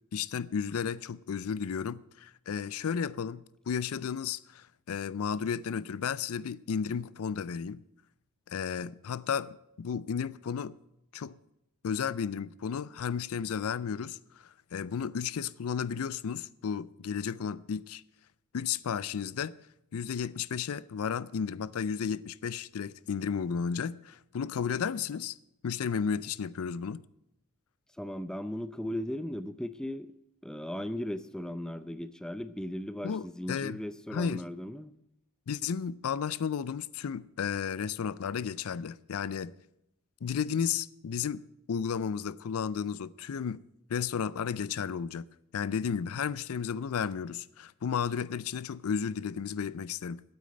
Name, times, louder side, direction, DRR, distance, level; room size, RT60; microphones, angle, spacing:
voice 1, 0.1-7.8 8.5-10.7 11.1-11.3 11.8-18.0 18.5-19.5 19.9-25.4 25.6-27.0 33.0-33.8 34.1-34.4 35.5-39.5 40.2-41.4 41.7-43.6 43.9-45.2 45.5-50.2, left 7 dB, 70° left, 0.4 m, -33 dB
voice 2, 28.0-30.1 30.4-34.9, left 1 dB, 5° left, 0.4 m, -37 dB
9.2 x 8.4 x 8.8 m
head